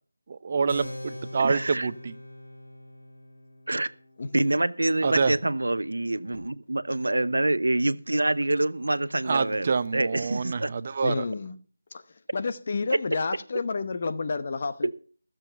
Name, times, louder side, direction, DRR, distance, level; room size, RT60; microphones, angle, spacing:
voice 1, 0.3-2.1 5.0-5.3 9.2-11.2, right 5 dB, 30° right, 0.6 m, -27 dB
Keyboard (musical), 0.7-6.8, left 1 dB, 80° left, 4.5 m, -44 dB
voice 2, 1.4-1.9 3.7-3.9 4.3-10.7 14.8-14.9, right 2 dB, 85° right, 0.8 m, -26 dB
Fireworks, 6.3-8.5, equal, 5° left, 6.6 m, -55 dB
voice 3, 11.0-11.6 11.9-12.0 12.3-14.9, left 4 dB, 35° left, 0.9 m, -30 dB
15.0 x 7.3 x 5.7 m
figure-of-eight pair, 175°, 0 cm